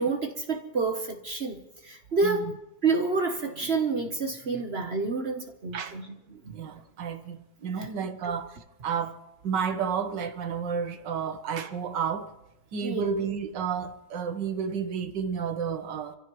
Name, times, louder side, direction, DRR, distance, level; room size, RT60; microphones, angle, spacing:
voice 1, 0.0-1.6 1.9-2.5 2.8-6.0 12.8-13.1, right 4 dB, 40° right, 1.1 m, -28 dB
voice 2, 2.2-2.5 5.7-6.0 6.5-8.6 8.8-9.2 9.4-12.3 12.7-16.2, right 6 dB, 70° right, 1.8 m, -31 dB
26.5 x 15.5 x 3.1 m
omnidirectional pair, 2.0 m